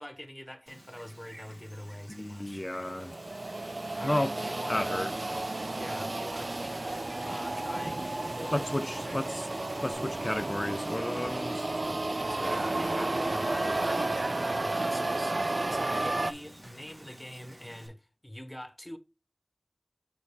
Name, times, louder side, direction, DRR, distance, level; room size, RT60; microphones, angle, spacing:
voice 1, 0.0-2.7 4.0-5.1 5.7-9.7 12.3-19.0, equal, 15° left, 1.1 m, -44 dB
Wind, 0.7-17.9, right 1 dB, 60° right, 2.4 m, -51 dB
voice 2, 2.1-3.1 4.0-4.3 4.7-5.1 8.5-9.5 9.8-11.7, left 1 dB, 35° left, 0.3 m, -32 dB
sound 1, 2.8-16.3, right 2 dB, 80° right, 0.3 m, -32 dB
Drum kit / Snare drum / Bass drum, 9.9-17.6, equal, 40° right, 1.4 m, -56 dB
7.4 x 4.1 x 3.3 m
wide cardioid pair, 40°, 0 cm